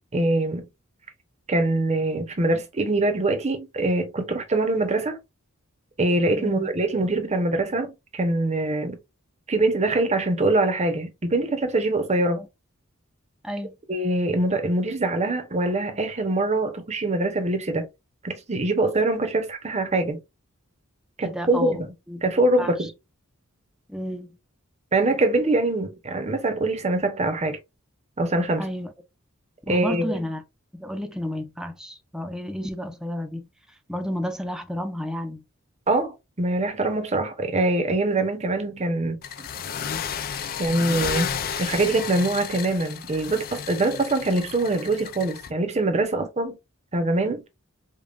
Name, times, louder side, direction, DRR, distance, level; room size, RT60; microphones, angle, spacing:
voice 1, 0.1-0.6 1.5-5.2 6.0-9.0 9.5-12.4 13.9-17.9 18.2-20.2 21.2-21.9 22.2-22.9 24.9-27.6 28.2-28.6 29.7-30.2 35.9-39.2 40.6-46.6 46.9-47.4, right 2 dB, 30° right, 0.9 m, -24 dB
voice 2, 6.4-6.7 12.4-12.5 13.4-13.7 21.2-22.2 22.6-22.9 23.9-24.3 28.6-28.9 29.7-30.4 30.7-33.5 33.9-35.4, left 1 dB, 5° right, 0.6 m, -31 dB
sound 1, 39.2-45.5, left 7 dB, 45° left, 0.4 m, -32 dB
5.2 x 2.4 x 2.4 m
head